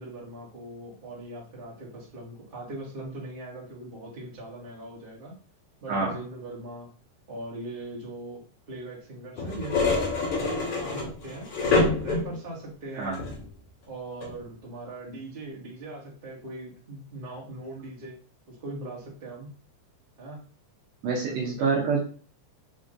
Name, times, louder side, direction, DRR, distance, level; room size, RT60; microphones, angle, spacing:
voice 1, 0.0-5.3 5.8-6.9 7.3-11.5 12.0-13.2 13.9-18.1 18.5-19.5 20.2-20.4 21.1-21.7, right 2 dB, 25° right, -5 dB, 1.3 m, -40 dB
sound 1, 9.4-12.5 13.1-13.5 14.2-14.4, left 3 dB, 55° left, 2.4 m, -26 dB
voice 2, 21.0-22.0, right 4 dB, 70° right, -2 dB, 1.9 m, -26 dB
5.2 x 3.6 x 2.6 m, 0.42 s
omnidirectional pair, 3.5 m